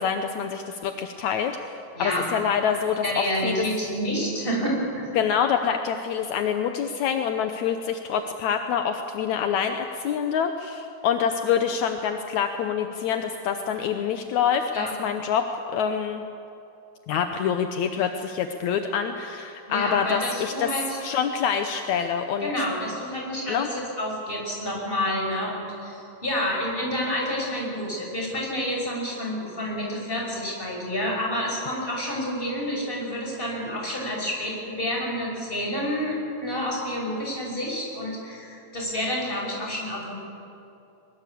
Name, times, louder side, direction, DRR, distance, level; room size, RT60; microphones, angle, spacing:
voice 1, 0.0-3.6 5.2-16.2 17.1-22.7 23.5-23.7, left 7 dB, 75° left, 6 dB, 2.2 m, -26 dB
voice 2, 1.9-2.3 3.0-5.1 14.7-14.9 19.7-21.0 22.4-40.1, equal, 15° left, -2 dB, 6.3 m, -29 dB
22.5 x 22.5 x 8.5 m, 2.7 s
omnidirectional pair, 3.4 m